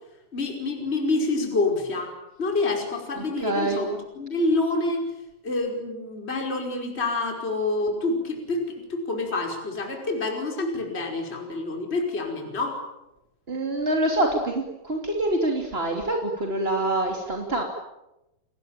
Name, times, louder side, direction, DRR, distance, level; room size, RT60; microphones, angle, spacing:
voice 1, 0.3-2.1 2.4-5.0 5.4-12.8, left 2 dB, 10° left, 2 dB, 4.9 m, -27 dB
voice 2, 3.1-3.9 13.5-17.6, right 1 dB, 20° right, 1 dB, 1.9 m, -26 dB
29.5 x 20.5 x 9.0 m, 0.93 s
omnidirectional pair, 5.8 m